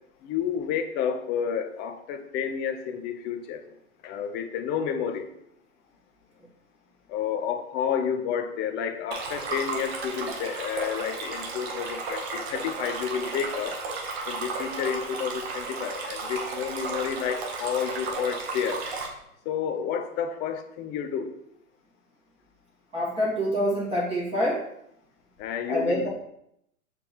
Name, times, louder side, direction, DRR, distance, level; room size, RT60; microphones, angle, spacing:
voice 1, 0.2-3.6 4.0-5.3 7.1-13.8 14.3-18.8 19.5-21.3 25.4-26.1, left 7 dB, 25° left, 7 dB, 0.7 m, -30 dB
Stream, 9.1-19.1, right 3 dB, 45° right, 1.8 m, -34 dB
voice 2, 22.9-24.6 25.7-26.1, equal, 15° right, -6 dB, 2.5 m, -26 dB
6.8 x 5.2 x 4.6 m, 0.76 s
hypercardioid pair, 120°, 43 cm